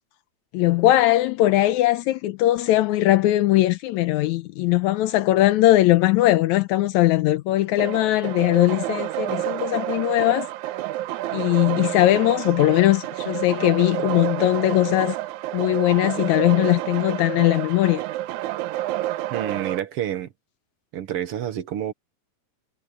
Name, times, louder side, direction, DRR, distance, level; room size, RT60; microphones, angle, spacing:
voice 1, 0.5-10.5 11.3-15.2 15.5-18.0, left 15 dB, 80° left, 2.0 m, -20 dB
sound 1, 7.8-19.8, right 15 dB, 80° right, 2.2 m, -29 dB
voice 2, 19.3-20.3 20.9-21.9, right 10 dB, 60° right, 1.8 m, -28 dB
omnidirectional pair, 3.4 m